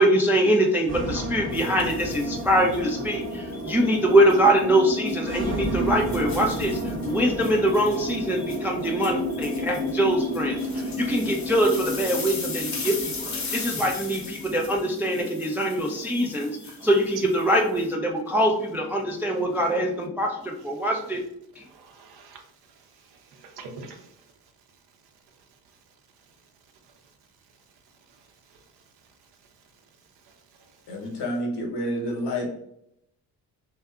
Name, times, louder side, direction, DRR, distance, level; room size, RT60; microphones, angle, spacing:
voice 1, 0.0-21.2 21.6-21.7, right 1 dB, 5° right, 1 dB, 0.3 m, -23 dB
sound 1, 0.9-14.8, equal, 25° right, 0.9 m, -31 dB
sound 2, 1.5-2.8 3.5-4.4 4.9-5.2 5.6-17.9, left 4 dB, 40° left, 0.8 m, -38 dB
voice 2, 21.7-22.4 23.3-24.1, right 3 dB, 65° right, 3 dB, 0.7 m, -44 dB
voice 3, 30.9-32.5, equal, 65° left, -1 dB, 1.0 m, -29 dB
2.6 x 2.3 x 2.3 m, 0.78 s
hypercardioid pair, 50°, 43 cm